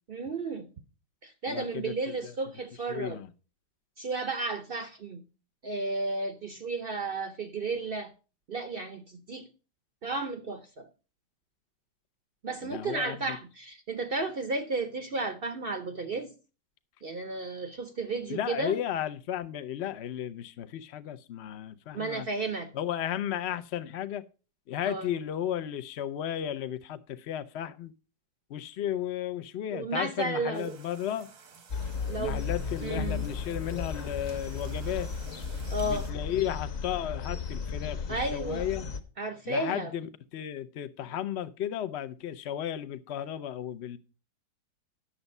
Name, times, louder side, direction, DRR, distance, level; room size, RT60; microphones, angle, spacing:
voice 1, 0.1-0.7 1.2-3.2 4.0-5.2 5.6-8.1 8.5-9.5 10.0-10.9 12.4-16.3 17.0-18.8 21.9-22.7 24.8-25.1 29.7-30.8 32.1-32.4 32.8-33.2 35.7-36.1 38.1-38.7 39.2-39.9, right 3 dB, 55° right, 0.6 m, -33 dB
voice 2, 1.5-2.3 2.9-3.3 12.6-13.4 18.3-22.3 22.7-24.2 24.7-27.9 28.5-31.3 32.2-35.1 35.8-38.9 39.5-44.0, left 10 dB, 80° left, 0.5 m, -34 dB
sound 1, 30.5-36.1, right 6 dB, 90° right, 2.2 m, -53 dB
sound 2, 31.7-39.0, left 5 dB, 45° left, 1.1 m, -35 dB
10.0 x 7.1 x 5.3 m
omnidirectional pair, 2.0 m